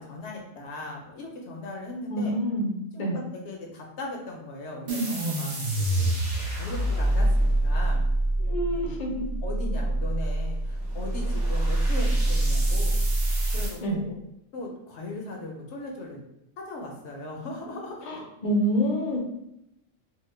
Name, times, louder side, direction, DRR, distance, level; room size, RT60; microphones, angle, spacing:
voice 1, 0.0-2.3 2.9-8.0 8.6-9.0 9.4-13.0 13.5-14.2 14.5-16.2 16.6-18.2, left 2 dB, 65° left, 0 dB, 0.8 m, -38 dB
voice 2, 2.1-3.2 8.4-9.2 13.8-14.0 18.1-19.2, equal, 45° left, -1 dB, 0.5 m, -27 dB
sound 1, 4.9-13.8, right 1 dB, 40° right, 0.7 m, -25 dB
2.9 x 2.1 x 3.2 m, 0.83 s
omnidirectional pair, 1.3 m